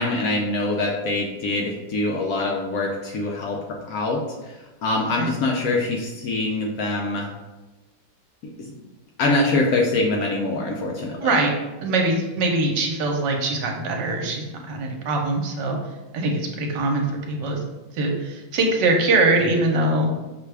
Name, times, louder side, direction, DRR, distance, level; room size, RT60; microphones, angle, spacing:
voice 1, 0.0-4.2 4.8-7.3 8.6-8.7 9.2-11.4, left 2 dB, 70° left, -1 dB, 0.9 m, -24 dB
voice 2, 11.8-15.8 16.1-17.6 17.9-20.1, right 2 dB, 80° right, 2 dB, 1.3 m, -22 dB
5.8 x 2.3 x 3.3 m, 1.1 s
omnidirectional pair, 1.9 m